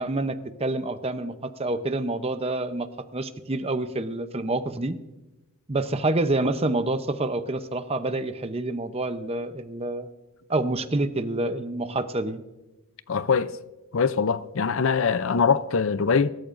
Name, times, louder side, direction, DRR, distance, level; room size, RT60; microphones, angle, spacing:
voice 1, 0.0-5.0 5.7-10.1 10.5-12.4, right 2 dB, 25° right, 0.7 m, -27 dB
voice 2, 13.1-13.5 13.9-16.3, left 5 dB, 60° left, 0.5 m, -22 dB
24.0 x 13.5 x 2.6 m
head